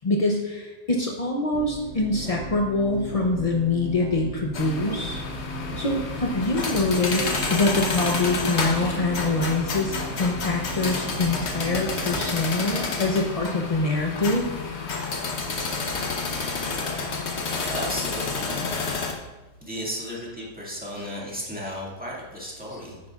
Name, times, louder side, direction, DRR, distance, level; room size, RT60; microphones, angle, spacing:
voice 1, 0.0-5.2 5.8-14.5, left 2 dB, 60° left, 0 dB, 0.3 m, -25 dB
sound 1, 1.5-12.3, right 4 dB, 65° right, 0.8 m, -37 dB
sound 2, 4.5-19.1, left 4 dB, 45° left, 1.2 m, -29 dB
voice 2, 17.6-18.8 19.6-23.0, equal, 5° right, -6 dB, 1.9 m, -34 dB
9.5 x 9.3 x 2.4 m, 1.1 s
omnidirectional pair, 1.7 m